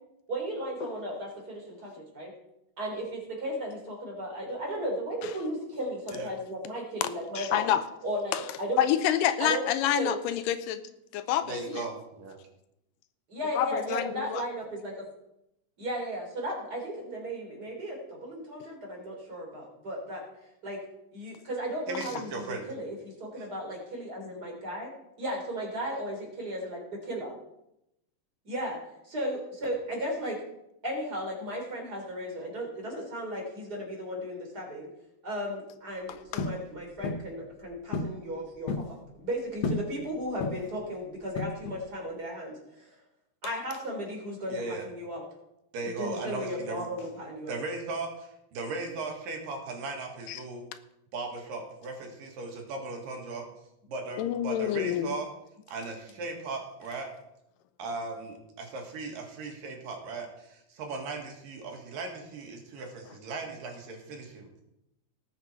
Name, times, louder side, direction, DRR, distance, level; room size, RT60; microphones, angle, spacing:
voice 1, 0.3-2.3 2.8-7.7 8.0-8.8 9.4-9.6 10.0-10.2 13.3-15.1 15.8-20.2 20.6-20.8 21.1-24.9 25.2-26.8 27.1-27.3 28.4-30.4 30.8-34.9 35.2-43.0 43.4-45.2 45.8-47.6 48.7-48.8, equal, 30° right, -1 dB, 3.8 m, -35 dB
voice 2, 7.4-7.8 8.3-8.4 8.8-10.8 11.1-11.8 13.6-14.4 36.3-36.4 50.3-50.4 54.2-55.2, left 11 dB, 85° left, 12 dB, 2.3 m, -28 dB
voice 3, 11.4-12.4 21.9-22.7 23.3-23.5 44.5-44.8 45.7-46.9 47.5-48.1 48.6-50.7 51.1-53.5 53.9-55.3 55.7-57.1 57.8-64.6, right 3 dB, 80° right, 2 dB, 3.6 m, -37 dB
sound 1, 36.4-36.6 37.0-37.3 37.9-38.2 38.5-38.9 39.6-39.9 40.4-40.8 41.4-41.8, left 3 dB, 65° left, 1.6 m, -32 dB
18.5 x 7.4 x 4.6 m, 0.84 s
omnidirectional pair, 3.9 m